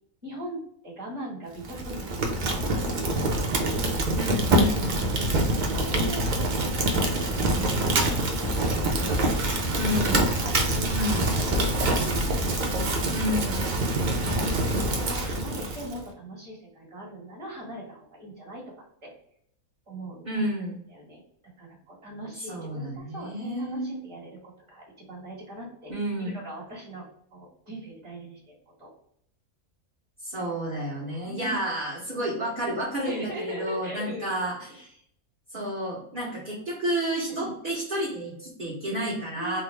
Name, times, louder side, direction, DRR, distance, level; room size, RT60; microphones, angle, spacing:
voice 1, 0.2-3.4 5.5-6.9 7.1-9.9 10.4-11.1 11.3-12.2 13.0-14.1 14.8-18.6 19.0-19.1 19.9-20.4 20.9-21.2 21.6-25.9 26.2-27.0 27.3-28.5 28.8-28.9 31.2-31.6 33.0-34.8 35.5-35.7 37.3-37.5 39.3-39.6, right 1 dB, 20° right, -4 dB, 1.4 m, -41 dB
Fire, 1.6-16.0, right 1 dB, 70° right, 0.4 m, -25 dB
voice 2, 4.2-5.1 9.8-10.3 10.9-11.3 13.1-13.7 20.2-20.8 22.5-24.0 25.9-26.4 30.2-34.9 35.5-39.6, equal, 40° right, -7 dB, 1.0 m, -30 dB
3.5 x 2.0 x 3.2 m, 0.70 s
omnidirectional pair, 1.5 m